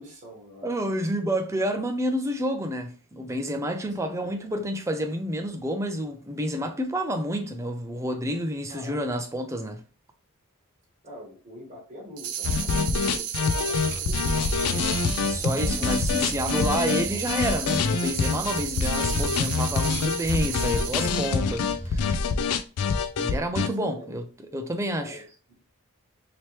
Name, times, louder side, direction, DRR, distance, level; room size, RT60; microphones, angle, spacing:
voice 1, 0.0-0.7 4.0-4.4 8.7-9.0 11.0-16.1 17.0-17.2 23.5-24.1 25.0-25.3, left 1 dB, 35° right, 1.1 m, -45 dB
voice 2, 0.6-9.8 15.2-22.2 23.2-24.2 24.5-25.2, right 1 dB, 15° right, 0.4 m, -29 dB
sound 1, 12.2-21.3, right 9 dB, 80° right, 0.5 m, -34 dB
sound 2, 12.4-23.7, left 5 dB, 85° left, 0.4 m, -26 dB
sound 3, 13.4-22.1, equal, 55° left, 1.0 m, -38 dB
3.0 x 2.9 x 3.0 m
head